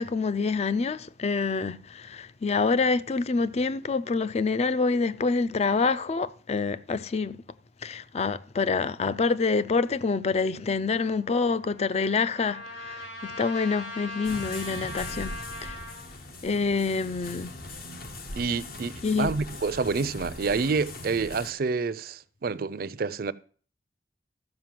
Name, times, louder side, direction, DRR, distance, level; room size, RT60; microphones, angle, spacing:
voice 1, 0.0-7.4 7.8-15.8 16.4-17.5 19.0-19.3, left 4 dB, 35° left, 0.4 m, -27 dB
Trumpet, 11.0-16.1, left 1 dB, 70° left, 5.7 m, -40 dB
sound 1, 14.2-21.5, left 1 dB, 55° left, 1.1 m, -40 dB
voice 2, 18.3-23.3, right 4 dB, 55° right, 0.5 m, -28 dB
13.0 x 5.2 x 7.6 m
head